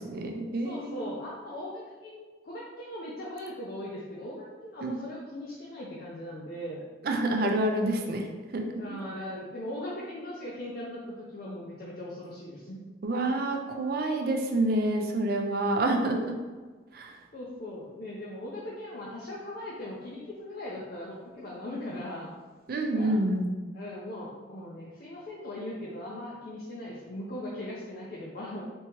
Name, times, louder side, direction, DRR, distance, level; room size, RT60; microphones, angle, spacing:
voice 1, 0.0-1.1 4.8-5.0 7.0-8.3 8.5-8.6 13.0-16.2 16.9-17.2 22.7-23.5, right 1 dB, 55° right, 3 dB, 0.4 m, -28 dB
voice 2, 0.6-6.8 8.8-12.9 17.3-22.3 22.8-23.2 23.7-28.6, left 1 dB, 55° left, -5 dB, 0.5 m, -39 dB
3.5 x 2.8 x 2.9 m, 1.4 s
head